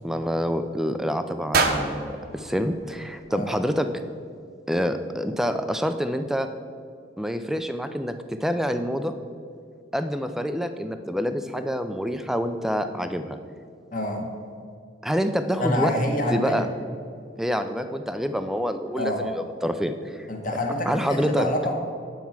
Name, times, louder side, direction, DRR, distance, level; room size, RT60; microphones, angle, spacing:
voice 1, 0.0-4.0 4.7-6.5 7.2-8.1 8.4-9.1 9.9-13.4 15.0-16.0 16.3-16.7 17.4-20.3 20.8-21.5, equal, ahead, 9 dB, 0.4 m, -27 dB
sound 1, 1.5-3.7, right 3 dB, 50° right, 0.8 m, -28 dB
voice 2, 13.9-14.3 15.6-16.6 19.0-19.2 20.3-21.7, left 1 dB, 45° left, 1 dB, 1.3 m, -27 dB
9.4 x 4.6 x 7.2 m, 2.3 s
head